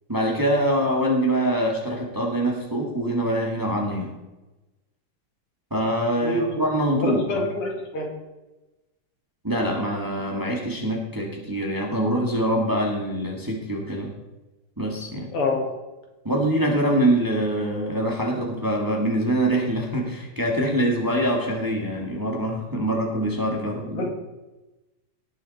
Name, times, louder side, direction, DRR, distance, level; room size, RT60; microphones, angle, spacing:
voice 1, 0.1-4.1 5.7-7.5 9.4-14.1 14.8-15.3 16.2-24.1, right 1 dB, 10° right, -1 dB, 1.6 m, -24 dB
voice 2, 6.2-6.6 6.9-8.1 15.3-15.7 23.9-24.1, left 1 dB, 85° left, 1 dB, 3.0 m, -26 dB
17.5 x 6.7 x 4.2 m, 1.1 s
omnidirectional pair, 2.4 m